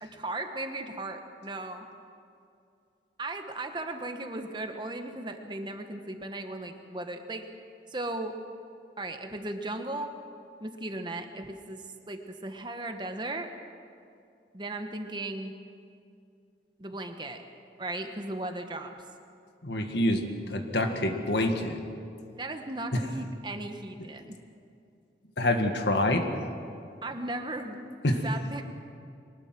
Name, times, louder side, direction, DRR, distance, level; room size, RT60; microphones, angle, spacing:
voice 1, 0.0-1.9 3.2-7.5 7.9-8.3 9.0-10.1 10.6-13.5 14.5-15.5 16.8-17.4 17.8-18.9 22.3-24.4 27.0-27.8 28.2-28.6, right 2 dB, 25° right, 6 dB, 1.2 m, -36 dB
voice 2, 19.6-20.2 20.5-21.8 25.4-26.3 28.0-28.2, left 1 dB, 80° left, 5 dB, 1.9 m, -26 dB
23.0 x 20.0 x 6.0 m, 2.5 s
head